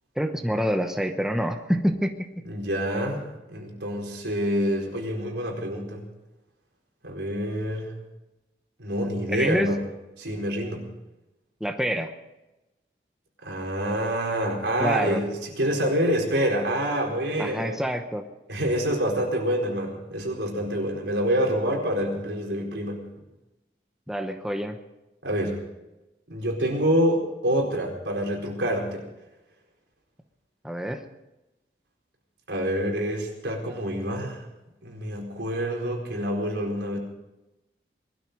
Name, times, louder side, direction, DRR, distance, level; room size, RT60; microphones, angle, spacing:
voice 1, 0.2-2.4 9.3-9.7 11.6-12.1 14.8-15.2 17.4-18.2 24.1-24.8 30.6-31.0, equal, 5° right, 5 dB, 0.9 m, -27 dB
voice 2, 2.4-3.2 3.5-6.1 7.0-7.9 8.8-9.8 10.2-10.9 13.4-15.3 15.6-17.8 18.5-23.0 25.2-25.6 26.3-29.0 32.5-34.4 34.8-37.0, equal, 90° right, 0 dB, 4.5 m, -27 dB
21.0 x 13.0 x 5.3 m, 0.99 s
head